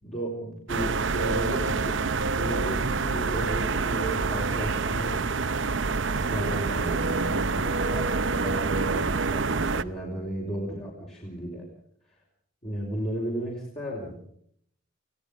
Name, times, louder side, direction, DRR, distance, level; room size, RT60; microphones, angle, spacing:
voice 1, 0.0-2.0 2.4-5.4 6.1-11.7 12.6-14.2, right 1 dB, 30° left, -3 dB, 4.9 m, -34 dB
sound 1, 0.7-9.8, right 4 dB, 65° right, 0.8 m, -27 dB
29.0 x 17.0 x 5.4 m, 0.66 s
head